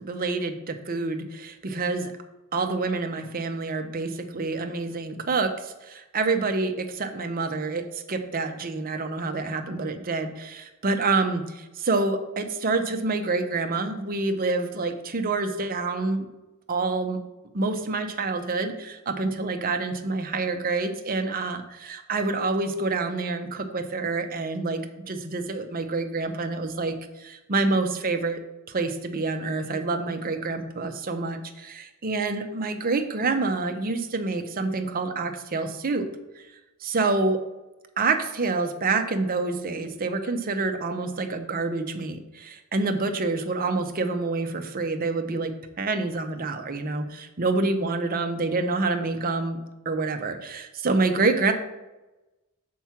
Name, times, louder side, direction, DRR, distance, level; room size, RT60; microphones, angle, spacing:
voice 1, 0.0-2.1 2.5-16.3 16.7-17.2 17.5-24.8 25.1-28.4 28.7-36.1 36.8-37.4 38.0-49.6 49.8-51.5, right 3 dB, 40° right, 6 dB, 0.7 m, -27 dB
6.0 x 4.6 x 5.8 m, 1.0 s
head